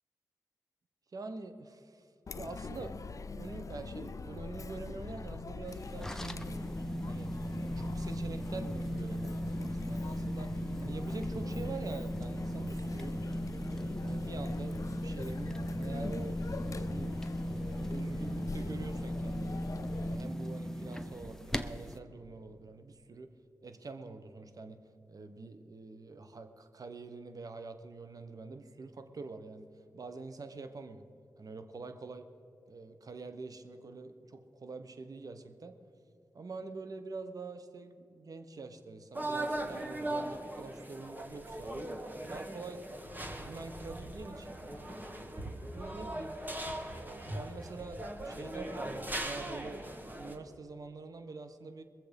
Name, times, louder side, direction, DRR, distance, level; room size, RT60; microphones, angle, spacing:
voice 1, 1.1-2.1 2.3-6.7 7.0-7.3 7.7-10.5 10.8-13.2 13.7-17.1 17.5-19.6 20.0-23.3 23.6-24.8 25.1-31.1 31.4-32.3 32.7-35.7 36.3-41.7 42.3-42.9 43.3-44.6 45.2-46.4 46.9-51.8, right 3 dB, 60° right, 9 dB, 1.1 m, -46 dB
Chatter, 2.3-20.2, left 4 dB, 50° left, 0.5 m, -43 dB
sound 1, 5.7-22.0, equal, 5° left, 0.8 m, -37 dB
sound 2, 39.1-50.3, right 1 dB, 25° right, 2.1 m, -39 dB
21.5 x 7.6 x 5.3 m, 2.5 s
cardioid pair, 50°, 7 cm